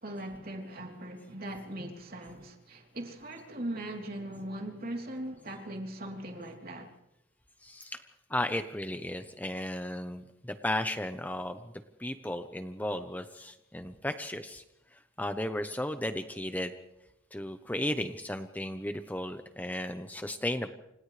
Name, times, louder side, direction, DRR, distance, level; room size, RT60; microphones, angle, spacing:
voice 1, 0.0-6.9, right 1 dB, 50° right, 3.5 m, -40 dB
voice 2, 7.6-8.0 8.3-11.7 12.0-14.6 14.9-16.7 17.3-20.7, left 1 dB, 10° left, 0.8 m, -35 dB
29.5 x 26.5 x 3.3 m
head